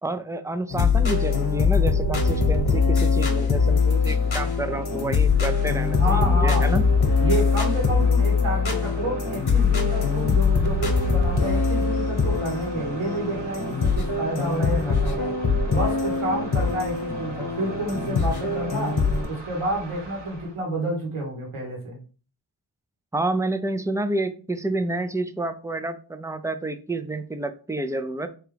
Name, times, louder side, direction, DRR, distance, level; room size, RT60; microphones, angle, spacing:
voice 1, 0.0-6.8 23.1-28.3, right 2 dB, 5° right, 9 dB, 0.3 m, -29 dB
sound 1, 0.7-19.3, left 5 dB, 50° left, 1.1 m, -22 dB
sound 2, 3.5-20.6, right 2 dB, 55° right, 1.4 m, -44 dB
voice 2, 6.0-6.7 7.2-15.3 15.7-19.0 19.3-22.0, right 1 dB, 85° right, -1 dB, 1.6 m, -29 dB
3.5 x 3.0 x 3.3 m, 0.37 s
cardioid pair, 50°, 49 cm